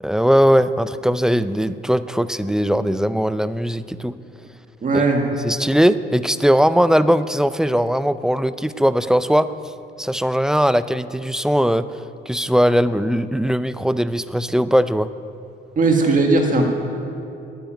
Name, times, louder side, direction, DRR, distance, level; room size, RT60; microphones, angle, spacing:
voice 1, 0.0-4.1 5.4-9.5 10.0-15.1, equal, 5° right, 13 dB, 0.5 m, -19 dB
voice 2, 4.8-5.3 15.8-16.7, right 3 dB, 40° right, 2 dB, 1.8 m, -17 dB
12.5 x 9.2 x 9.3 m, 2.6 s
cardioid pair, 90°, 20 cm